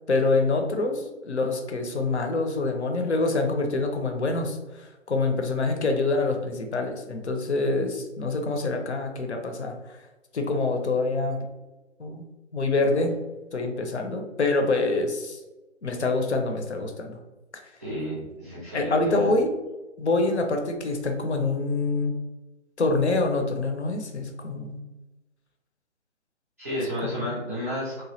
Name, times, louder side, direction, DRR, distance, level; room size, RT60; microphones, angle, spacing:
voice 1, 0.1-10.0 10.3-11.4 12.0-12.2 12.5-13.1 13.5-15.4 15.8-17.2 18.7-19.5 20.0-22.2 22.8-24.8 27.2-27.3, left 3 dB, 70° left, 4 dB, 0.6 m, -26 dB
voice 2, 17.8-19.3 26.6-28.0, equal, 15° right, -9 dB, 0.5 m, -32 dB
2.9 x 2.3 x 3.0 m, 1.1 s
figure-of-eight pair, 140°, 36 cm